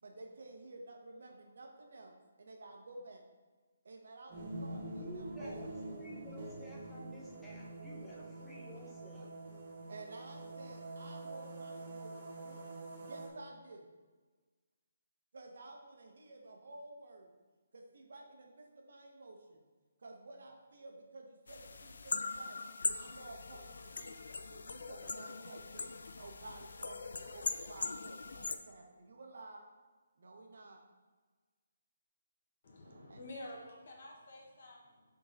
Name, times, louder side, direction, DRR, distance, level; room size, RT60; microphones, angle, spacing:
voice 1, 0.0-3.2 3.8-5.6 9.9-12.7 13.0-13.8 15.3-17.3 17.7-19.6 20.0-22.6 22.9-24.1 24.4-25.9 26.2-29.6 30.2-30.8 32.8-33.2, right 2 dB, 60° right, 2 dB, 1.0 m, -52 dB
sound 1, 4.3-13.3, right 2 dB, 30° right, 0.9 m, -46 dB
voice 2, 4.8-9.3, equal, 5° left, -5 dB, 0.7 m, -52 dB
sound 2, 21.5-28.6, left 4 dB, 70° left, 0.4 m, -41 dB
voice 3, 32.6-35.0, left 1 dB, 50° left, -1 dB, 1.3 m, -50 dB
6.3 x 3.8 x 4.0 m, 1.3 s
hypercardioid pair, 175°, 0 cm